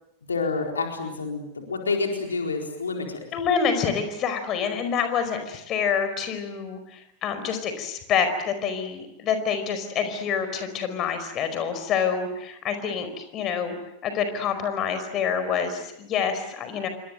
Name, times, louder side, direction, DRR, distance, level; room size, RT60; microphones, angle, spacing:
voice 1, 0.3-3.2, left 4 dB, 75° left, 2 dB, 4.3 m, -28 dB
voice 2, 3.3-13.7 14.0-16.9, left 6 dB, 35° left, 9 dB, 4.8 m, -27 dB
28.5 x 24.5 x 7.9 m, 0.81 s
figure-of-eight pair, 90°, 0 cm